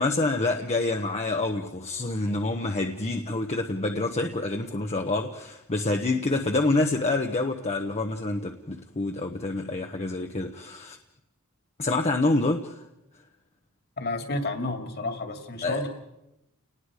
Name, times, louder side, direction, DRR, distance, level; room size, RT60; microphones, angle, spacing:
voice 1, 0.0-11.0 11.8-12.7 15.6-15.8, left 2 dB, 30° left, 0.9 m, -27 dB
voice 2, 14.0-15.9, left 2 dB, 50° left, 2.3 m, -31 dB
29.5 x 19.5 x 4.9 m
head